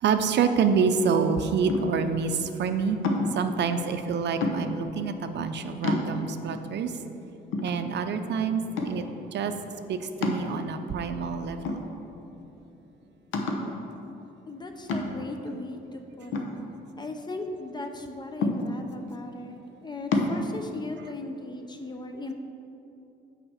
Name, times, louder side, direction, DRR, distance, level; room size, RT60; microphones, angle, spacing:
voice 1, 0.0-3.0 3.3-6.9 7.6-9.0 9.3-9.5 9.9-11.8, right 6 dB, 60° right, 8 dB, 0.5 m, -27 dB
sound 1, 1.7-2.1 3.0-3.5 4.4-4.9 5.4-5.5 5.8-6.5 7.0-7.1 7.5-8.3 8.8-9.2 10.2-11.0 11.7-12.3 12.6-12.7 13.3-13.8 14.9-15.4 16.3-17.2 18.4-19.0 20.1-20.4, left 2 dB, 85° left, 0.8 m, -29 dB
voice 2, 14.5-16.5 17.0-22.3, left 2 dB, 20° left, 5 dB, 0.7 m, -37 dB
6.2 x 5.0 x 6.4 m, 2.9 s
cardioid pair, 90°, 20 cm